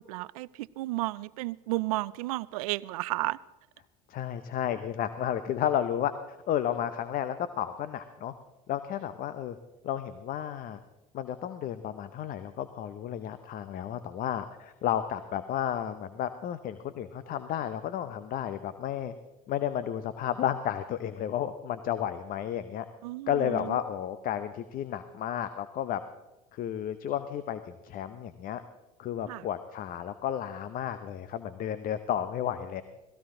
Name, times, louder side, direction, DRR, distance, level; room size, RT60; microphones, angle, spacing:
voice 1, 0.0-3.4 23.0-23.8 29.3-29.4, right 20 dB, 75° right, 0.5 m, -33 dB
voice 2, 4.1-6.1 6.5-8.3 8.7-9.6 9.8-10.8 11.1-19.1 19.5-22.9 23.3-26.0 26.5-28.6 29.0-32.8, left 10 dB, 50° left, 0.8 m, -32 dB
17.5 x 15.5 x 3.8 m
hypercardioid pair, 80°, 19 cm